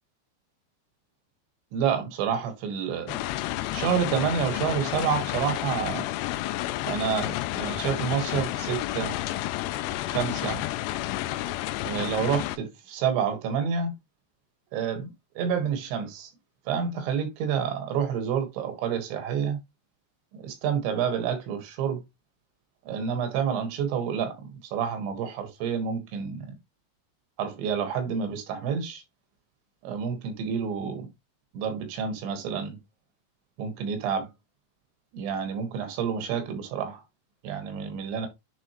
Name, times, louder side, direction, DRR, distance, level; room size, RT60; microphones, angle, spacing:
voice 1, 1.7-3.2 3.7-6.1 6.9-9.2 10.1-10.6 11.9-13.9 14.7-16.3 16.7-19.6 20.4-22.0 22.9-24.4 24.7-26.5 27.4-29.0 29.8-31.1 31.5-32.8 33.6-34.3 35.1-37.0 37.4-38.3, right 7 dB, 90° right, 3.7 m, -29 dB
sound 1, 3.1-12.6, left 16 dB, 85° left, 2.7 m, -31 dB
9.7 x 3.7 x 2.9 m
omnidirectional pair, 5.0 m